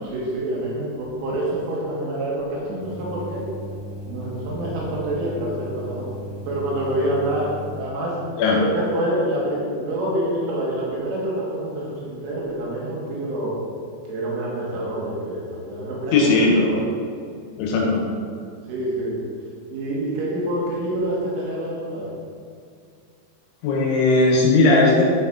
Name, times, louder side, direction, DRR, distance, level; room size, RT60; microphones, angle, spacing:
voice 1, 0.0-3.4 4.1-6.1 6.5-7.5 7.8-8.2 8.6-13.5 14.1-16.8 18.7-19.2 19.7-22.1, right 1 dB, 80° right, -6 dB, 4.3 m, -27 dB
sound 1, 2.8-7.8, right 1 dB, 60° left, 2.7 m, -36 dB
voice 2, 16.1-16.6 17.6-18.0 23.6-25.0, left 3 dB, 80° left, -2 dB, 3.8 m, -17 dB
12.0 x 5.2 x 4.2 m, 2.3 s
omnidirectional pair, 5.5 m